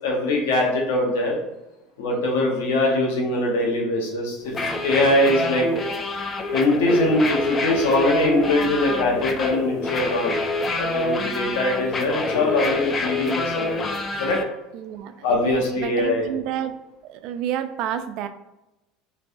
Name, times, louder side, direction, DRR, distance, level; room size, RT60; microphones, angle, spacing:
voice 1, 0.0-1.4 2.0-5.7 6.5-10.3 10.8-14.4 15.2-16.3, left 2 dB, 90° left, 0 dB, 1.0 m, -22 dB
sound 1, 4.5-14.4, left 2 dB, 25° left, 0.4 m, -26 dB
voice 2, 14.7-16.8 17.1-18.3, right 9 dB, 60° right, 9 dB, 0.3 m, -29 dB
3.3 x 3.1 x 2.6 m, 0.95 s
supercardioid pair, 125°, 0 cm